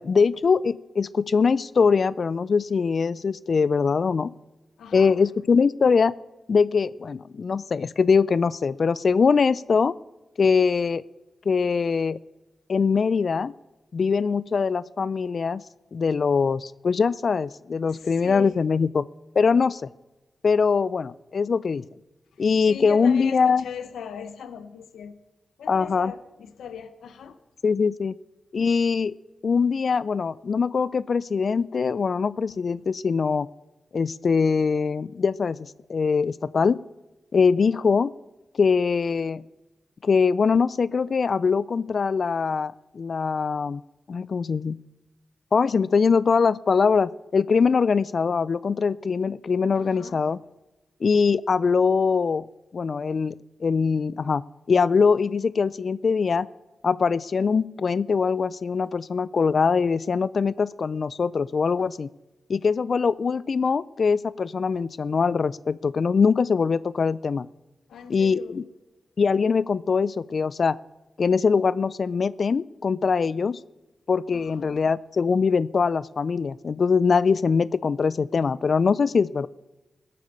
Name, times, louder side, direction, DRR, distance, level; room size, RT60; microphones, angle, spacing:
voice 1, 0.0-4.3 4.9-6.1 6.5-10.0 10.4-11.0 11.5-12.2 12.7-13.5 13.9-15.6 15.9-19.1 19.4-19.9 20.4-21.8 22.4-23.7 25.7-26.1 27.6-28.1 28.5-29.1 29.4-33.5 33.9-36.8 37.3-38.1 38.6-39.4 40.0-43.8 44.1-44.8 45.5-50.4 51.0-52.5 52.7-56.5 56.8-62.1 62.5-67.5 68.1-68.6 69.2-70.8 71.2-73.6 74.1-79.5, left 5 dB, 60° left, 0.3 m, -22 dB
voice 2, 4.8-5.2 17.9-18.6 22.7-25.1 25.6-27.4 49.7-50.3 67.9-68.6 74.3-74.8, left 7 dB, 85° left, 0.8 m, -39 dB
16.0 x 8.4 x 6.7 m
supercardioid pair, 45°, 0 cm